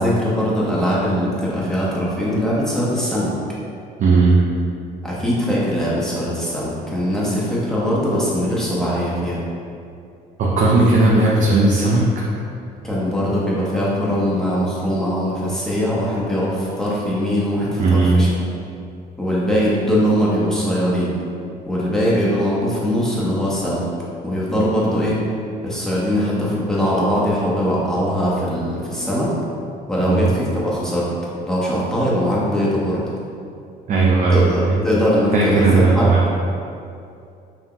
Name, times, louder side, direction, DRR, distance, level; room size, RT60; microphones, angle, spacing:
voice 1, 0.0-3.3 5.0-9.4 12.8-18.3 19.2-21.1 21.7-23.9 24.2-25.2 25.6-29.3 29.9-31.1 31.5-33.0 34.3-36.1, equal, 5° left, -7 dB, 1.0 m, -21 dB
voice 2, 4.0-4.4 10.4-12.0 17.8-18.2 30.0-30.2 33.9-34.7 35.3-36.3, right 3 dB, 50° right, -4 dB, 0.6 m, -16 dB
5.6 x 2.8 x 2.3 m, 2.5 s
cardioid pair, 110°, 17 cm